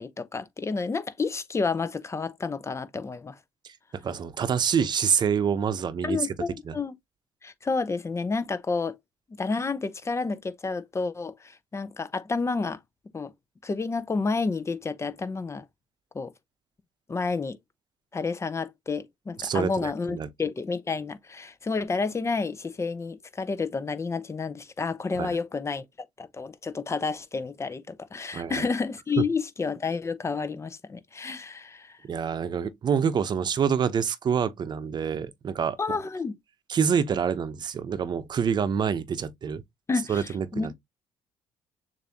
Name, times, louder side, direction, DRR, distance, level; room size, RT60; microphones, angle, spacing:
voice 1, 0.0-3.4 6.0-6.9 7.4-9.0 9.4-12.8 13.1-13.3 13.6-15.7 16.1-16.3 17.1-17.6 18.1-25.8 26.2-32.0 35.8-36.4 39.9-40.7, left 4 dB, 30° left, 0.8 m, -30 dB
voice 2, 3.6-6.3 6.6-6.7 19.4-20.3 25.1-25.4 28.3-28.6 32.0-36.0 36.7-39.6 40.1-40.7, right 7 dB, 50° right, 0.8 m, -27 dB
6.8 x 2.7 x 2.8 m
supercardioid pair, 65°, 10 cm